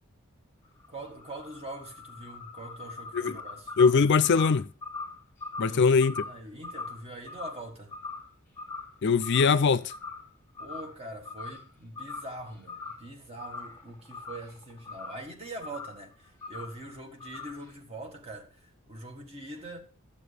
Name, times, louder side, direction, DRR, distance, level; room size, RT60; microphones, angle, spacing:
sound 1, 0.6-8.3 8.6-9.0 9.2-10.3 10.5-10.9 11.2-11.7 12.0-13.1 13.4-15.3 15.6-16.0 16.4-16.8 17.2-17.7, left 3 dB, 10° left, 2.8 m, -41 dB
voice 1, 0.9-3.8 5.6-7.9 10.6-19.8, right 1 dB, 30° right, 1.6 m, -43 dB
voice 2, 3.8-4.7 5.6-6.2 9.0-9.9, left 5 dB, 55° left, 0.4 m, -22 dB
12.0 x 7.1 x 3.4 m
head